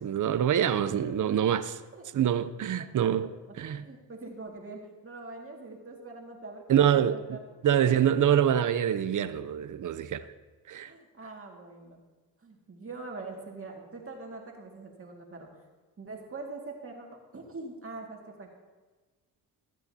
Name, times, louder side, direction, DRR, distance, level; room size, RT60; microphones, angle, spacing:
voice 1, 0.0-1.8 2.1-3.9 6.7-10.3 10.7-10.9, right 9 dB, 50° right, 0.7 m, -26 dB
voice 2, 3.7-7.4 10.9-12.0 12.4-15.5 16.0-17.1 17.3-18.5, right 3 dB, 30° right, 2.0 m, -43 dB
16.0 x 8.7 x 2.8 m
cardioid pair, 70°, 41 cm